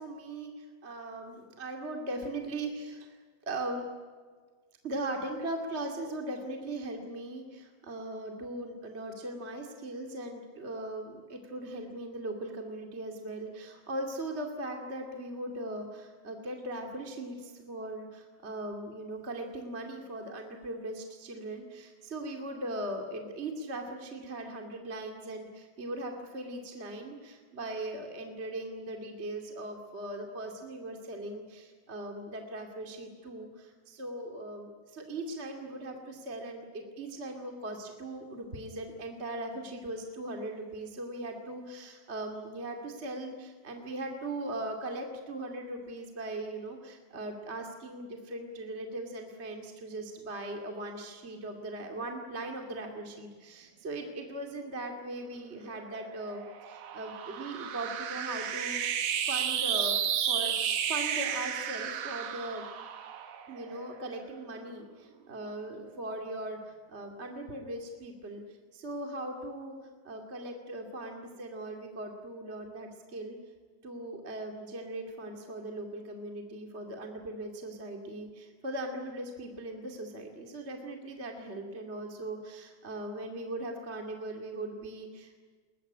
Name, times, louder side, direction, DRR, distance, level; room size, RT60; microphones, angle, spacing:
voice 1, 0.0-3.2 3.4-3.8 4.8-58.9 59.3-60.0 60.3-62.6 63.5-68.4 68.7-69.8 70.0-73.4 73.8-85.4, right 1 dB, 20° right, 3 dB, 2.3 m, -39 dB
sound 1, 55.7-64.4, right 8 dB, 70° right, 2.8 m, -33 dB
21.5 x 21.5 x 9.8 m, 1.5 s
omnidirectional pair, 3.7 m